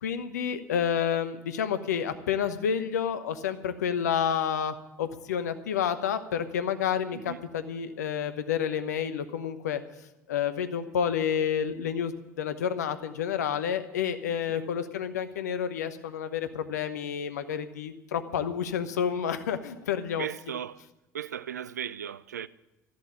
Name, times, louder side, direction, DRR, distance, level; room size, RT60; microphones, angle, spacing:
voice 1, 0.0-9.8 10.3-20.3, left 8 dB, 75° left, 1.0 m, -29 dB
voice 2, 7.1-7.4 14.5-14.7 20.2-20.8 21.1-22.5, right 9 dB, 80° right, 0.4 m, -37 dB
13.5 x 7.4 x 9.8 m
figure-of-eight pair, 65°, 9 cm